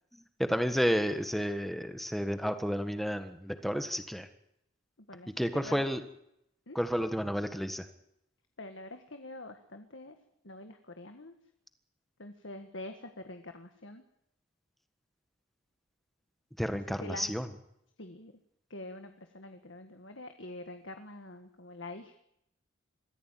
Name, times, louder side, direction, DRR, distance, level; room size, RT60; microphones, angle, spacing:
voice 1, 0.5-4.3 5.4-6.0 6.7-7.8 16.6-17.4, equal, ahead, 8 dB, 1.5 m, -31 dB
voice 2, 5.1-5.9 6.7-6.8 8.6-10.2 10.4-11.3 12.2-14.0 16.7-17.4 18.0-18.3 18.7-22.2, left 2 dB, 60° left, 7 dB, 1.7 m, -45 dB
23.5 x 15.5 x 9.2 m, 0.79 s
head